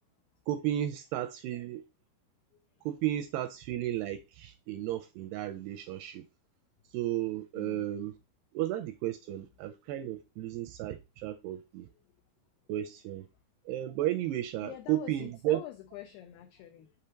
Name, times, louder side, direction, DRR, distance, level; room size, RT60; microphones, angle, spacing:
voice 1, 0.5-1.8 2.9-6.2 6.9-8.2 8.5-11.9 12.7-13.3 13.7-15.6, right 13 dB, 85° right, 2.3 m, -33 dB
voice 2, 7.5-7.9 11.8-11.9 14.6-16.9, left 13 dB, 90° left, 2.2 m, -46 dB
6.9 x 3.6 x 4.4 m
omnidirectional pair, 5.1 m